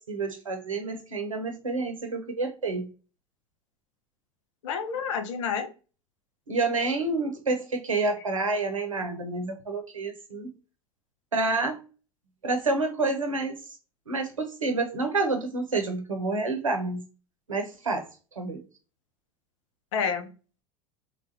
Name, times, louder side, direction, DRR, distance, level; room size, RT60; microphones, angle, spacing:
voice 1, 0.1-2.9 6.5-10.5 11.3-11.8 12.4-13.6 14.1-17.0 17.5-18.1 18.4-18.6, right 3 dB, 90° right, 0.8 m, -28 dB
voice 2, 4.6-5.7 19.9-20.3, left 6 dB, 65° left, 0.8 m, -29 dB
3.5 x 2.5 x 2.6 m
figure-of-eight pair, 80°, 16 cm